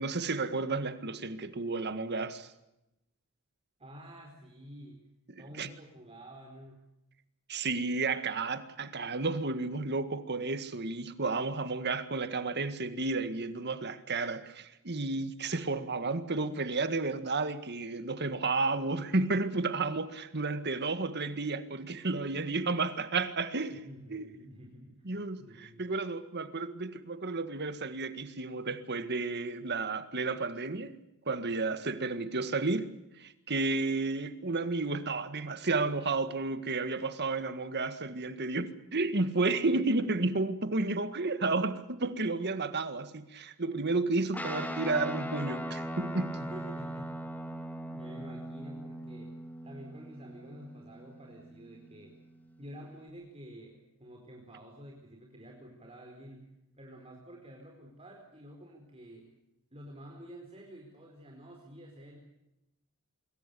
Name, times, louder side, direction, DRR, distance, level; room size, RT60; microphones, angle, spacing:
voice 1, 0.0-2.5 5.3-5.7 7.5-23.8 24.1-24.3 25.0-30.9 31.2-46.4, right 3 dB, 50° right, 1.8 m, -32 dB
voice 2, 3.8-5.0 5.4-6.8 23.7-25.1 25.4-25.9 46.3-49.3 49.6-52.2 52.6-59.3 59.7-62.2, equal, 25° right, 4.5 m, -49 dB
Guitar, 44.3-53.1, equal, 10° left, 2.7 m, -40 dB
26.0 x 22.5 x 7.0 m
head